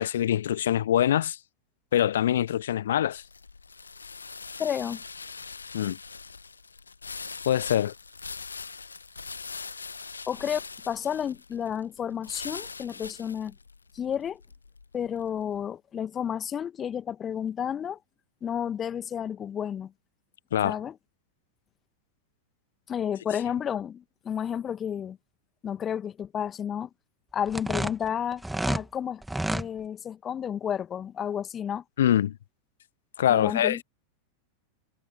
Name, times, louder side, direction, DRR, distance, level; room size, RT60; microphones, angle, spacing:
voice 1, 0.0-1.4 1.9-3.2 5.7-6.0 7.5-7.9 20.5-20.8 32.0-32.4 33.2-33.8, left 11 dB, 60° left, 0.7 m, -24 dB
sound 1, 2.1-15.4, left 4 dB, 75° left, 1.1 m, -42 dB
voice 2, 4.6-5.0 10.3-13.6 13.9-14.4 14.9-18.0 18.4-19.9 20.6-20.9 22.9-25.2 25.6-26.9 27.3-29.2 29.5-31.8 33.3-33.8, left 8 dB, 25° left, 1.9 m, -31 dB
sound 2, 27.5-28.8 29.2-29.7, right 1 dB, 5° right, 2.1 m, -29 dB
figure-of-eight pair, 90°, 0 cm